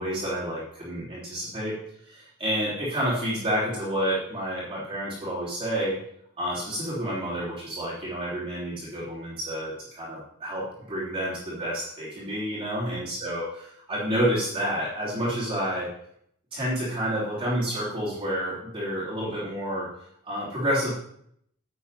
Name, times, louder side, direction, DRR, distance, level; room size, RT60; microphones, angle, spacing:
voice 1, 0.0-1.8 2.0-6.0 6.4-13.4 13.9-15.9 16.5-19.9 20.2-20.9, equal, 25° right, -9 dB, 3.3 m, -29 dB
10.5 x 7.9 x 4.1 m, 0.69 s
head